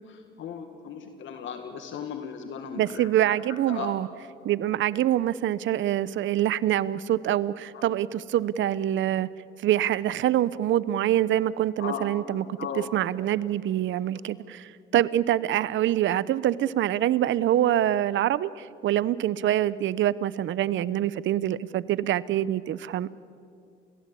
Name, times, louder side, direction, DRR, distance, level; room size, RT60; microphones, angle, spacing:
voice 1, 0.1-3.4 3.7-3.9 7.7-7.9 11.8-12.1 12.6-12.9, left 7 dB, 75° left, 6 dB, 1.9 m, -36 dB
voice 2, 2.8-4.1 4.4-9.3 9.6-12.4 12.7-23.1, right 12 dB, 75° right, 18 dB, 0.8 m, -25 dB
30.0 x 16.5 x 8.5 m, 2.5 s
cardioid pair, 90°, 20 cm